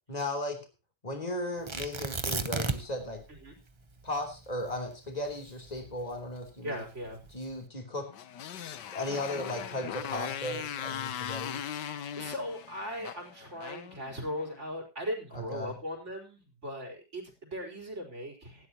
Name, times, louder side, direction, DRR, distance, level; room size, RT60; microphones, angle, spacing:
voice 1, 0.1-0.6 1.0-3.2 4.0-6.8 7.3-8.1 8.9-11.6 15.3-15.7, left 1 dB, 20° left, 4 dB, 3.5 m, -36 dB
Tearing, 1.7-3.1 3.4-3.5 4.0-6.4 7.1-7.5, right 3 dB, 25° right, 0.7 m, -34 dB
voice 2, 6.6-7.2 12.2-18.7, equal, 45° right, 3 dB, 4.6 m, -39 dB
Motorcycle, 8.1-14.6, left 9 dB, 90° left, 1.6 m, -39 dB
18.5 x 12.5 x 3.0 m, 0.29 s
omnidirectional pair, 1.8 m